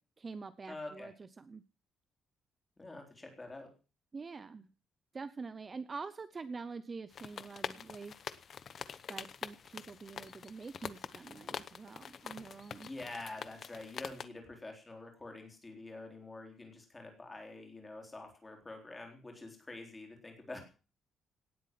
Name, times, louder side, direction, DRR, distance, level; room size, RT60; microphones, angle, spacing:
voice 1, 0.0-1.6 4.1-4.7 5.1-8.2 9.1-12.9, right 4 dB, 25° right, 14 dB, 0.7 m, -46 dB
voice 2, 0.7-1.1 2.8-3.7 12.9-20.6, left 2 dB, 15° left, 3 dB, 3.9 m, -47 dB
sound 1, 7.1-14.3, left 7 dB, 40° left, 0.9 m, -45 dB
18.0 x 8.2 x 7.6 m, 0.36 s
cardioid pair, 175°, 0 cm